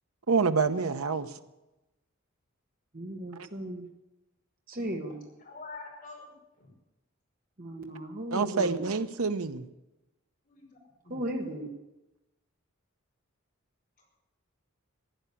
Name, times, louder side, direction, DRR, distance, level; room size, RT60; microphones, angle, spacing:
voice 1, 0.3-1.3 8.3-9.7, right 4 dB, 85° right, 9 dB, 0.9 m, -27 dB
voice 2, 2.9-3.9 4.7-5.2 7.6-8.8 11.1-11.7, right 1 dB, 40° right, 1 dB, 1.6 m, -36 dB
voice 3, 5.4-6.7 10.4-10.8 11.0-11.2 14.0-14.1, left 3 dB, 40° left, -1 dB, 5.6 m, -46 dB
16.0 x 10.5 x 8.5 m, 0.98 s
head